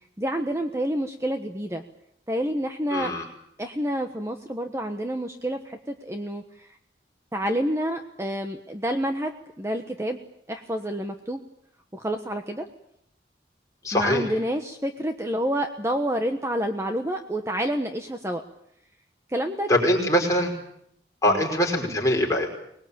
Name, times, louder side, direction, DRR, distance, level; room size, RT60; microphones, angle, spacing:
voice 1, 0.2-1.8 2.3-3.1 3.6-6.7 7.3-10.2 10.5-11.4 11.9-12.7 13.9-18.4 19.3-19.7 21.3-21.4, equal, 15° right, 5 dB, 1.2 m, -28 dB
voice 2, 2.9-3.2 13.8-14.2 19.7-20.5 21.2-22.5, left 1 dB, 20° left, 0 dB, 5.4 m, -22 dB
24.5 x 20.5 x 8.8 m, 0.74 s
head